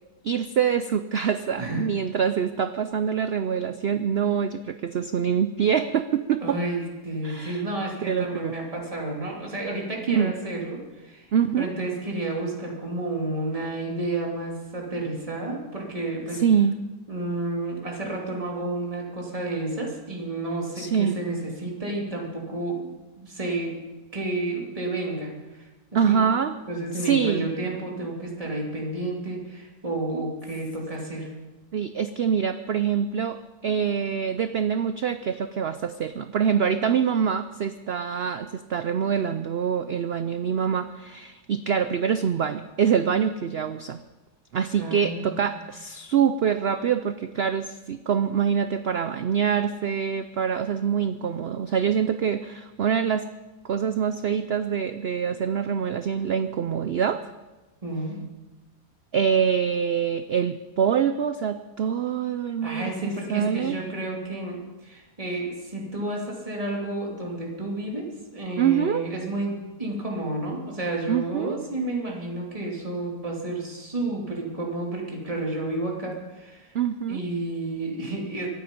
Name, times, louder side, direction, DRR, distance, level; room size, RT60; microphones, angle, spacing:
voice 1, 0.2-6.6 7.2-7.6 8.0-8.5 10.1-10.3 11.3-11.7 16.3-16.8 20.8-21.2 25.9-26.5 26.9-27.5 31.7-44.0 44.5-53.3 53.6-57.3 59.1-63.8 68.6-69.1 71.1-71.6 76.7-77.2, right 7 dB, 75° right, 10 dB, 0.5 m, -25 dB
voice 2, 6.4-11.3 11.6-16.4 17.1-23.7 24.1-25.7 25.9-26.2 26.7-31.3 44.8-45.5 57.8-58.2 62.6-76.7 77.1-78.5, right 2 dB, 20° right, -1 dB, 2.7 m, -31 dB
24.0 x 9.3 x 5.3 m, 1.2 s
omnidirectional pair, 1.7 m